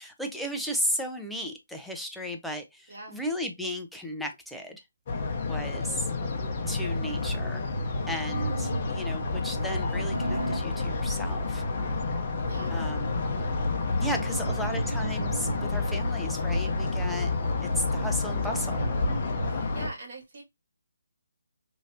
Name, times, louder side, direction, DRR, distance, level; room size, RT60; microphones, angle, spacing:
voice 1, 0.0-4.8 5.4-6.1 6.7-7.6 8.1-11.6 12.7-13.2 14.0-17.3 17.6-18.8, equal, ahead, 0.4 m, -34 dB
voice 2, 2.9-3.2 12.4-12.8 14.0-14.7 19.4-20.4, right 2 dB, 50° right, 1.8 m, -44 dB
sound 1, 5.1-19.9, left 3 dB, 35° left, 0.7 m, -30 dB
sound 2, 8.3-19.6, left 1 dB, 85° right, 1.0 m, -34 dB
3.1 x 2.7 x 2.7 m
hypercardioid pair, 160°, 0 cm